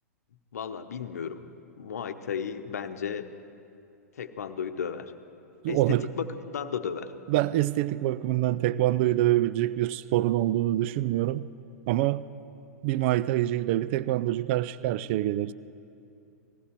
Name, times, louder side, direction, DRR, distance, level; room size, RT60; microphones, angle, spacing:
voice 1, 0.5-1.4 1.8-3.3 4.2-5.1 5.7-6.3 6.5-7.1, left 7 dB, 70° left, 10 dB, 0.9 m, -34 dB
voice 2, 5.6-6.1 7.3-11.5 11.9-12.3 12.8-15.5, right 14 dB, 45° right, 17 dB, 0.4 m, -25 dB
19.5 x 15.5 x 4.5 m, 2.6 s
figure-of-eight pair, 105°, 9 cm